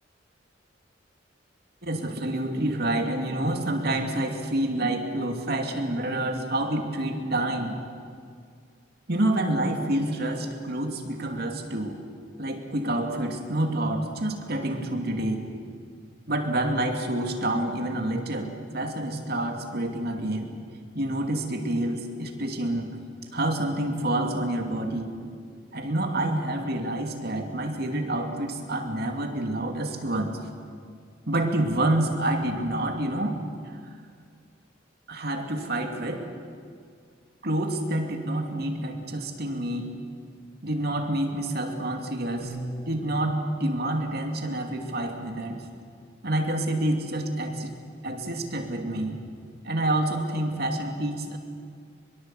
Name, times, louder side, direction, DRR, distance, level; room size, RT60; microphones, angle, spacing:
voice 1, 1.8-7.8 9.1-12.0 12.4-15.4 16.3-20.5 20.9-22.9 23.3-25.2 25.7-30.4 31.3-33.4 33.7-33.8 35.1-36.3 37.4-40.0 40.6-42.6 42.9-45.6 46.2-47.8 48.0-49.2 49.6-51.4, right 1 dB, 55° right, 3 dB, 2.7 m, -28 dB
Bass guitar, 42.4-48.6, right 1 dB, 55° left, 7.0 m, -45 dB
23.0 x 22.0 x 7.8 m, 2.2 s
head